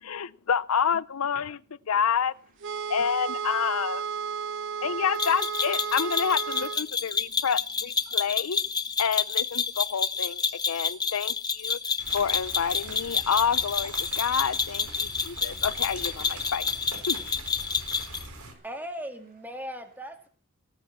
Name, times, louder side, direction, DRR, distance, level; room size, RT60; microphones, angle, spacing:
voice 1, 0.0-1.6 1.9-2.3 2.9-4.0 4.8-8.6 9.0-10.4 10.7-11.8 12.1-16.6 17.1-17.2, left 7 dB, 70° left, 0.6 m, -28 dB
voice 2, 2.2-4.8 18.2-18.7, right 3 dB, 40° right, 2.7 m, -66 dB
sound 1, 2.6-6.8, right 7 dB, 55° right, 1.2 m, -33 dB
sound 2, 5.2-18.3, left 5 dB, 20° left, 0.9 m, -29 dB
sound 3, 12.0-18.5, right 2 dB, 80° right, 4.1 m, -43 dB
voice 3, 18.6-20.3, equal, 10° right, 2.1 m, -38 dB
18.5 x 8.1 x 7.4 m
head